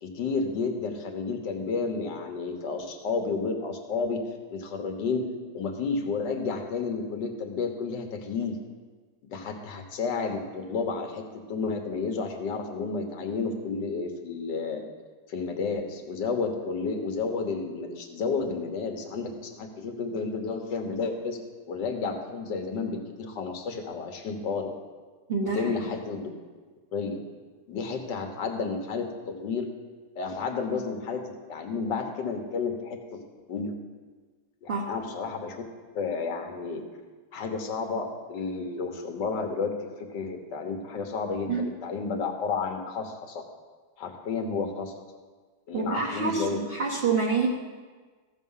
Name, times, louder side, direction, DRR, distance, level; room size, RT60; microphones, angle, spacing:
voice 1, 0.0-4.3 4.5-5.3 5.5-8.6 9.2-14.8 15.3-21.4 21.7-24.7 25.5-26.3 26.9-27.2 27.7-29.7 30.1-33.2 33.5-33.7 34.6-35.6 35.9-36.8 37.3-43.4 44.0-44.9 45.7-46.6, left 4 dB, 65° left, 4 dB, 1.8 m, -31 dB
voice 2, 25.3-25.7 34.7-34.9 41.5-41.7 45.7-47.5, right 5 dB, 40° right, -2 dB, 1.0 m, -27 dB
15.0 x 6.7 x 5.6 m, 1.4 s
omnidirectional pair, 2.1 m